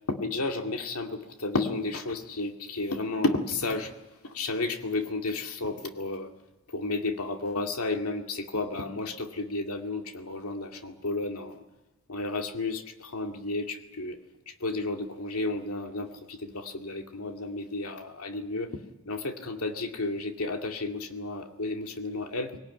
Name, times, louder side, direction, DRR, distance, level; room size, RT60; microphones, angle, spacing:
voice 1, 0.1-3.9 4.2-6.3 6.7-11.6 12.1-14.2 14.5-22.5, left 2 dB, 80° left, 5 dB, 2.3 m, -32 dB
21.0 x 18.5 x 9.5 m, 1.0 s
head